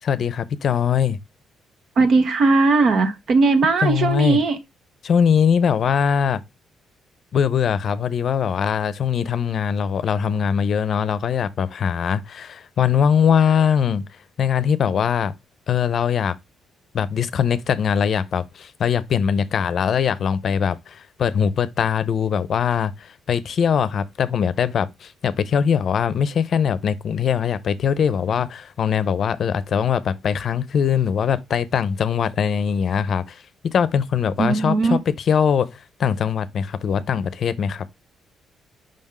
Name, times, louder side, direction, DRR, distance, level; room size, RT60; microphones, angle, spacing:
voice 1, 0.0-1.2 3.8-4.4 5.0-6.4 7.3-14.0 14.4-15.3 15.7-16.4 16.9-37.9, left 7 dB, 55° left, 0.6 m, -21 dB
voice 2, 2.0-4.6 34.4-35.0, right 3 dB, 60° right, 1.0 m, -18 dB
5.3 x 3.6 x 5.4 m
cardioid pair, 90°, 0 cm